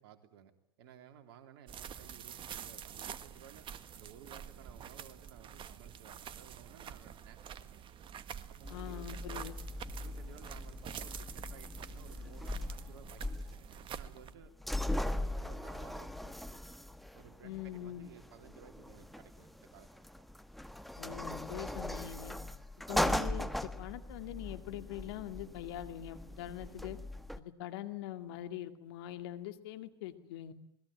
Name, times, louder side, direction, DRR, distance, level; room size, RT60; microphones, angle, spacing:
voice 1, 0.0-7.8 8.5-9.6 10.0-14.5 14.8-16.6 17.1-20.2 22.8-23.1, right 9 dB, 70° right, 7 dB, 3.2 m, -57 dB
sound 1, 1.7-14.3, right 9 dB, 40° right, 1.7 m, -47 dB
sound 2, 8.6-27.4, left 1 dB, ahead, 1.5 m, -40 dB
voice 2, 8.7-9.5 17.4-18.1 21.0-22.3 22.9-27.0 27.4-30.5, left 12 dB, 70° left, 8 dB, 2.3 m, -43 dB
27.0 x 21.0 x 8.8 m, 0.72 s
hypercardioid pair, 85°, 14 cm